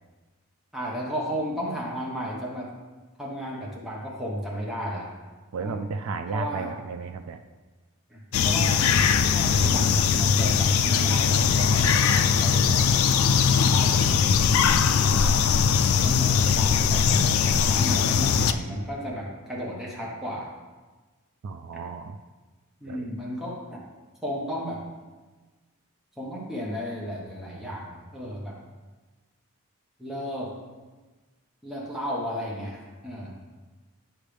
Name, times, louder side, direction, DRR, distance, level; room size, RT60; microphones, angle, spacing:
voice 1, 0.7-2.7 3.2-5.1 5.6-5.8 6.2-6.8 8.1-8.9 9.2-13.3 13.7-14.2 16.0-20.5 22.8-23.8 24.2-24.8 26.2-28.6 30.0-30.5 31.6-33.3, equal, ahead, -5 dB, 1.2 m, -34 dB
voice 2, 5.5-7.4 21.4-22.2 22.9-23.1, right 4 dB, 70° right, 6 dB, 0.4 m, -33 dB
sound 1, 8.3-18.5, left 6 dB, 70° left, 0.3 m, -21 dB
8.3 x 6.3 x 3.3 m, 1.3 s
head